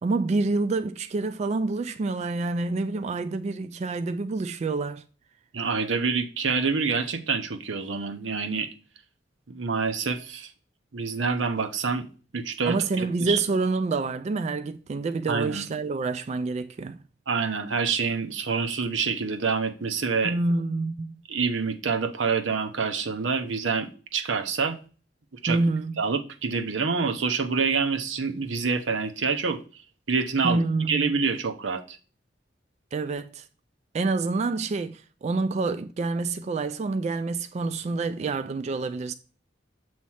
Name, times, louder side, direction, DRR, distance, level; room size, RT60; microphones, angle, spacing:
voice 1, 0.0-5.0 12.7-17.0 20.2-21.2 25.5-26.0 30.4-31.1 32.9-33.4 33.9-39.1, right 3 dB, 35° right, 0.3 m, -27 dB
voice 2, 5.5-8.7 9.5-10.5 10.9-12.1 12.3-13.4 15.3-15.6 17.3-20.4 21.3-24.8 25.4-25.6 26.0-29.6 30.1-30.6 30.9-32.0, right 5 dB, 90° right, 0.8 m, -27 dB
7.2 x 3.1 x 5.6 m
head